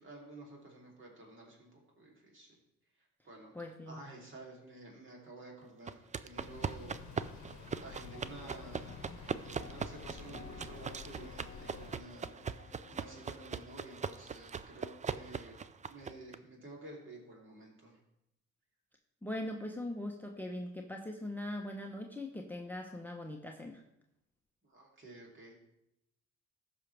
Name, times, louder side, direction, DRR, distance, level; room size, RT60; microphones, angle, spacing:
voice 1, 0.0-2.5 3.2-3.5 3.8-7.0 7.5-7.6 7.8-15.6 15.9-18.0 24.6-25.5, right 2 dB, 40° right, -2 dB, 3.1 m, -52 dB
voice 2, 3.5-4.0 19.2-23.8, left 1 dB, 5° left, 2 dB, 0.9 m, -41 dB
sound 1, 5.9-16.4, right 6 dB, 25° right, 0.4 m, -41 dB
sound 2, 6.4-12.0, left 6 dB, 65° left, 0.9 m, -50 dB
sound 3, 7.9-13.9, left 4 dB, 50° left, 1.2 m, -57 dB
14.5 x 6.0 x 3.4 m, 0.83 s
cardioid pair, 90°, 30 cm